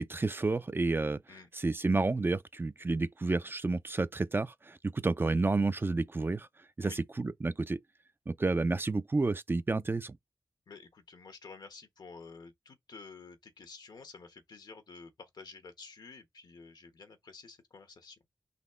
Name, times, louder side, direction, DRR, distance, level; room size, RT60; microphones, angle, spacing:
voice 1, 0.0-1.2 1.5-6.5 6.8-7.8 8.3-10.2, right 3 dB, 30° right, 0.4 m, -30 dB
voice 2, 10.7-18.2, left 4 dB, 75° left, 1.2 m, -51 dB
4.1 x 2.9 x 4.3 m
cardioid pair, 50°, 7 cm